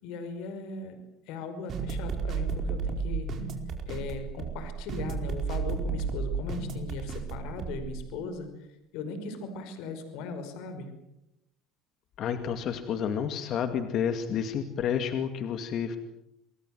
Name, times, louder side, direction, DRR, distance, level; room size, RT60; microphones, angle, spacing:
voice 1, 0.0-1.0 1.3-3.3 3.8-8.7 8.9-10.9, left 4 dB, 75° left, 9 dB, 5.3 m, -38 dB
sound 1, 1.7-8.0, right 5 dB, 45° right, 4.8 m, -33 dB
voice 2, 12.2-16.0, left 8 dB, 50° left, 8 dB, 2.3 m, -30 dB
28.0 x 20.5 x 7.9 m, 0.85 s
cardioid pair, 120°, 0 cm